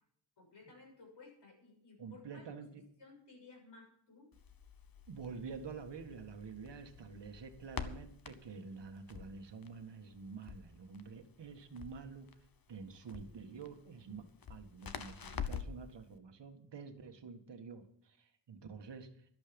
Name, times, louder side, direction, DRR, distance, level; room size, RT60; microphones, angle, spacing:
voice 1, 0.4-2.5 3.0-4.3, left 3 dB, 70° left, 0 dB, 6.9 m, -57 dB
voice 2, 2.0-2.8 5.1-12.3 12.7-19.1, right 5 dB, 65° right, 6 dB, 1.8 m, -48 dB
Crackle, 4.3-15.9, left 7 dB, 50° left, 1.1 m, -47 dB
13.0 x 12.0 x 5.2 m, 0.65 s
wide cardioid pair, 120°, 45 cm